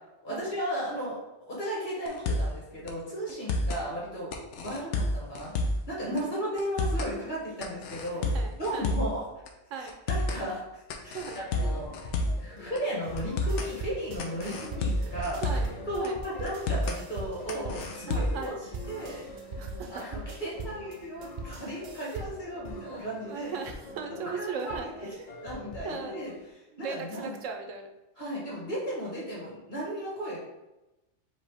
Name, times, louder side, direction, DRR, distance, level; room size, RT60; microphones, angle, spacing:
voice 1, 0.2-5.5 5.9-8.3 8.6-9.2 9.8-12.1 12.4-15.4 15.9-18.5 18.9-19.2 19.9-23.6 24.1-24.7 25.4-26.3 26.8-27.3 28.2-30.4, equal, 40° left, -5 dB, 1.7 m, -35 dB
sound 1, 2.1-2.6 2.9-3.0 3.3-3.8 4.3-5.9 6.2-6.3 6.6-7.1 7.6-9.2 9.5-9.6 9.9-10.4 10.9-12.5 12.8-12.9 13.2-13.7 14.2-15.8 16.0-16.1 16.5-17.0 17.5-18.5, left 1 dB, 75° left, 0.9 m, -29 dB
voice 2, 8.0-8.9 9.7-10.0 11.1-11.4 14.4-14.7 15.0-16.2 18.0-18.5 19.6-20.0 22.7-25.5 25.8-26.2 26.7-27.9, right 5 dB, 85° right, 4 dB, 1.0 m, -39 dB
sound 2, 11.3-26.5, left 2 dB, 55° left, 0.4 m, -46 dB
sound 3, 13.0-22.5, right 3 dB, 60° right, 0.5 m, -42 dB
5.0 x 2.8 x 3.4 m, 0.96 s
omnidirectional pair, 1.3 m